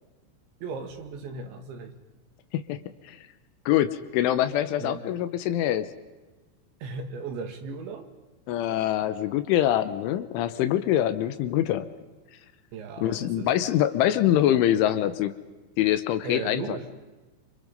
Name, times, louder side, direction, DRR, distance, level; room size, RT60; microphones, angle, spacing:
voice 1, 0.6-2.0 4.8-5.0 6.8-8.1 12.7-13.7 16.2-16.9, right 4 dB, 65° right, 6 dB, 4.1 m, -36 dB
voice 2, 3.7-5.9 8.5-11.9 13.0-15.3 15.8-16.8, left 12 dB, 80° left, 12 dB, 3.3 m, -24 dB
28.0 x 27.0 x 5.4 m, 1.2 s
omnidirectional pair, 5.8 m